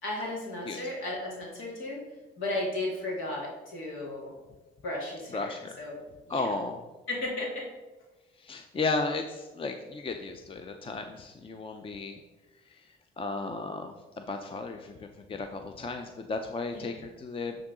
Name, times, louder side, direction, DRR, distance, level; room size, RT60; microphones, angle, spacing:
voice 1, 0.0-2.0 2.4-4.3 4.8-6.0 6.3-6.4 7.1-7.7 16.7-16.9, left 2 dB, 90° left, -3 dB, 2.2 m, -34 dB
voice 2, 5.3-5.8 6.3-6.8 8.4-12.2 12.7-17.6, left 3 dB, 25° left, 6 dB, 0.5 m, -34 dB
11.0 x 3.7 x 3.9 m, 1.1 s
cardioid pair, 90°, 20 cm